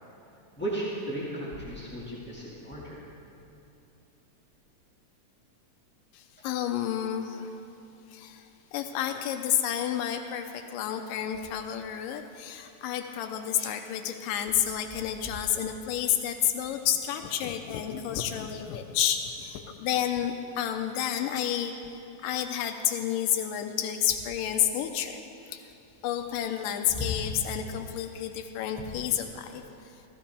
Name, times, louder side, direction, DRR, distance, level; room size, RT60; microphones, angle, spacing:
voice 1, 0.6-3.0 27.0-27.1, right 1 dB, 10° left, -8 dB, 0.7 m, -35 dB
voice 2, 6.1-7.6 8.1-25.7 26.0-29.9, left 10 dB, 90° left, 6 dB, 2.3 m, -30 dB
16.0 x 15.5 x 3.4 m, 2.8 s
omnidirectional pair, 3.8 m